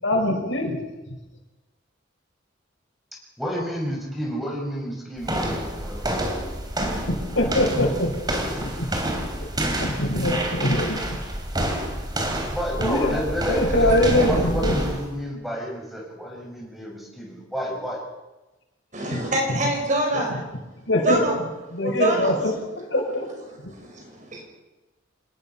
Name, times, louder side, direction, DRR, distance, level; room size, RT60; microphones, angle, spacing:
voice 1, 0.0-0.8 7.1-8.1 8.6-8.9 9.8-11.0 12.8-13.2 13.5-14.8 19.1-19.2 20.1-20.3 20.9-21.2 21.7-23.3 23.6-23.7, left 1 dB, 75° left, 1 dB, 6.1 m, -23 dB
voice 2, 3.4-6.1 12.5-18.0, equal, ahead, -1 dB, 6.8 m, -30 dB
sound 1, 5.2-15.1, right 1 dB, 20° right, 3.4 m, -28 dB
voice 3, 18.9-20.4 21.0-21.4 21.8-22.3 22.9-23.0 23.7-24.4, right 1 dB, 40° right, 2 dB, 6.1 m, -25 dB
27.5 x 20.5 x 5.9 m, 1.1 s
head